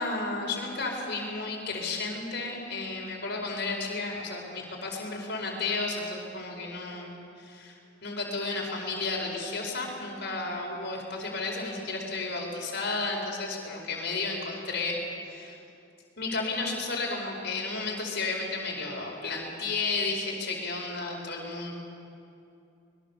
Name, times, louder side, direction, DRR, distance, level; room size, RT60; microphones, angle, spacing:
voice 1, 0.0-7.7 8.0-15.0 15.3-15.6 16.2-21.7, left 3 dB, 50° left, 0 dB, 5.0 m, -33 dB
24.5 x 22.0 x 7.1 m, 2.6 s
head